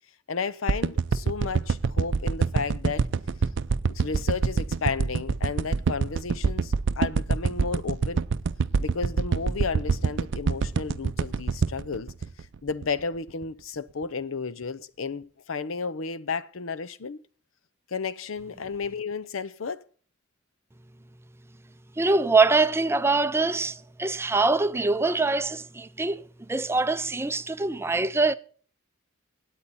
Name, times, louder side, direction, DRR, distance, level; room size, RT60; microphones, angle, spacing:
voice 1, 0.3-3.1 3.9-8.2 8.8-12.1 12.6-17.2 17.9-19.8, left 5 dB, 80° left, 0.7 m, -33 dB
sound 1, 0.7-13.0 13.4-13.5, right 5 dB, 65° right, 0.5 m, -25 dB
voice 2, 22.0-28.3, right 3 dB, 10° right, 0.5 m, -24 dB
18.5 x 8.5 x 4.2 m
head